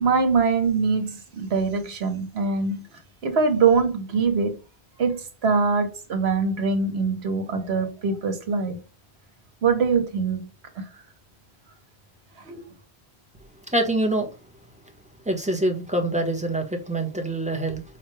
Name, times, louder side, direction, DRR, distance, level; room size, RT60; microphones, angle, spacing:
voice 1, 0.0-2.8 3.2-4.6 5.0-8.8 9.6-10.5 12.4-12.7, right 5 dB, 75° right, 1.3 m, -23 dB
voice 2, 13.7-14.3 15.2-17.8, right 1 dB, 5° right, 0.9 m, -25 dB
5.6 x 2.3 x 3.2 m
omnidirectional pair, 1.1 m